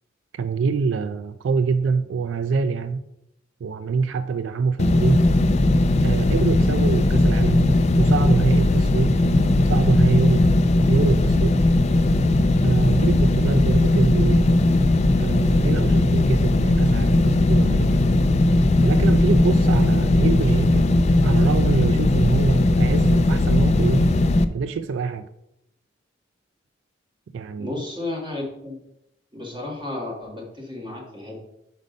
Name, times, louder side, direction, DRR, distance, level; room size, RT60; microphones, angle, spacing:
voice 1, 0.3-3.1 3.6-5.3 6.0-9.2 9.6-10.5 10.9-11.6 12.6-14.5 15.2-18.0 18.8-20.9 21.2-24.1 24.5-25.3 27.3-27.7, right 5 dB, 80° right, 12 dB, 0.3 m, -25 dB
sound 1, 4.8-24.4, left 2 dB, 35° left, 0.3 m, -18 dB
voice 2, 27.6-28.8 29.3-31.4, left 2 dB, 25° right, -2 dB, 1.9 m, -33 dB
5.3 x 5.1 x 5.2 m, 0.84 s
head